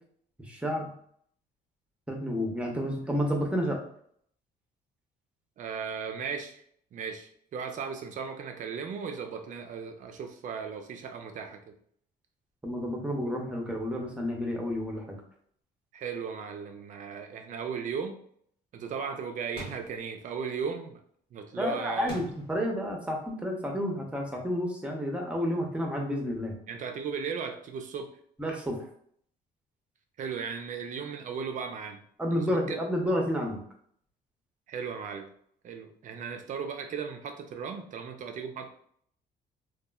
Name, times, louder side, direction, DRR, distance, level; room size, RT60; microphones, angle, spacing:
voice 1, 0.5-0.9 2.1-3.8 12.6-15.2 21.6-26.6 28.4-28.8 32.2-33.6, equal, 5° right, 0 dB, 0.7 m, -30 dB
voice 2, 5.6-6.6 6.9-11.7 15.9-18.2 18.7-21.0 21.3-22.1 26.7-28.1 30.2-32.0 32.3-32.8 34.7-35.3 35.6-38.8, right 6 dB, 50° right, 5 dB, 0.5 m, -36 dB
sound 1, 19.6-20.0 22.1-22.7, left 1 dB, 75° left, 1.3 m, -42 dB
2.9 x 2.3 x 2.3 m, 0.63 s
cardioid pair, 110°, 17 cm